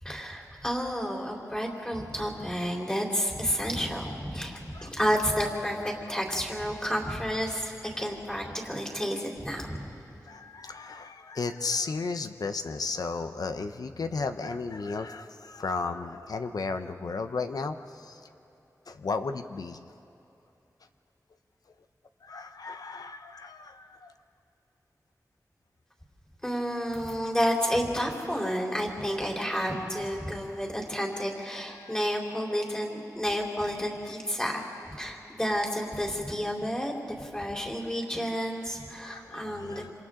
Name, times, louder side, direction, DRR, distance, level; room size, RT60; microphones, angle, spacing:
voice 1, 0.0-9.8 26.4-39.8, equal, 10° left, -1 dB, 3.6 m, -30 dB
voice 2, 10.3-18.2 18.9-19.8 22.2-24.1 31.8-31.9 34.7-34.8 39.0-39.9, left 4 dB, 80° left, 8 dB, 0.8 m, -34 dB
27.5 x 26.5 x 3.8 m, 2.8 s
wide cardioid pair, 70°, 6 cm